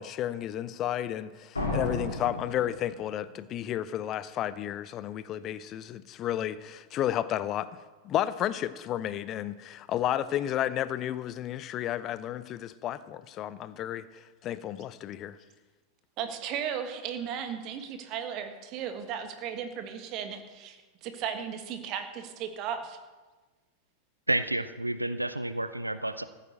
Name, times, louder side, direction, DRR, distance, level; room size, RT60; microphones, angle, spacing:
voice 1, 0.0-7.7 8.0-15.4, left 11 dB, 35° left, 0.6 m, -32 dB
sound 1, 1.6-3.4, left 2 dB, 80° left, 3.2 m, -33 dB
voice 2, 16.2-23.0, right 8 dB, 40° right, 1.6 m, -36 dB
voice 3, 24.3-26.2, right 1 dB, 85° right, 0.5 m, -30 dB
14.5 x 9.1 x 6.5 m
figure-of-eight pair, 90°, 0 cm